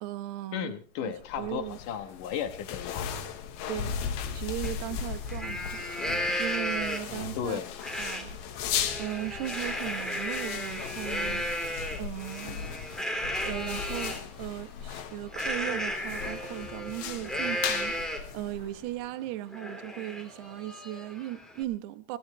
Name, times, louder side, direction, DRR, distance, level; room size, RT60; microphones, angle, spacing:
voice 1, 0.0-1.8 3.7-3.9 4.3-7.6 8.0-8.4 9.0-12.8 13.4-22.2, right 15 dB, 75° right, 2.9 m, -37 dB
voice 2, 0.5-3.1 7.3-7.8, left 9 dB, 65° left, 2.3 m, -34 dB
sound 1, 1.2-19.0, left 8 dB, 85° left, 3.7 m, -37 dB
Livestock farm animals working animals, 4.6-4.7 5.1-7.2 7.8-8.2 8.6-14.2 15.3-18.4 18.8-18.9 19.3-21.6, equal, ahead, 2.5 m, -34 dB
21.5 x 18.0 x 3.1 m
omnidirectional pair, 5.0 m